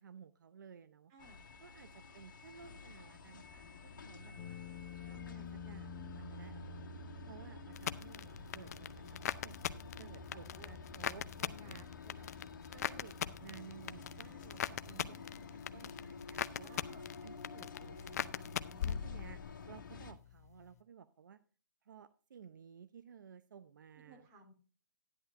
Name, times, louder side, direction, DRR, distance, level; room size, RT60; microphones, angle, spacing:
voice 1, 0.0-1.3 1.6-4.6 5.0-6.8 7.3-9.5 10.0-11.9 12.7-16.8 17.2-18.5 18.9-19.4 19.7-21.4 21.9-24.3, right 7 dB, 75° right, 12 dB, 0.8 m, -56 dB
voice 2, 1.1-1.4 10.2-10.7 11.4-12.5 16.6-17.1 24.1-24.5, right 1 dB, 30° right, 5 dB, 3.2 m, -58 dB
sound 1, 1.2-20.1, left 5 dB, 80° left, 1.9 m, -50 dB
sound 2, 4.4-18.4, left 3 dB, 20° left, 1.3 m, -54 dB
sound 3, 7.8-19.7 20.0-20.5, left 10 dB, 55° left, 0.6 m, -41 dB
12.0 x 11.0 x 2.6 m, 0.38 s
hypercardioid pair, 155°, 10 cm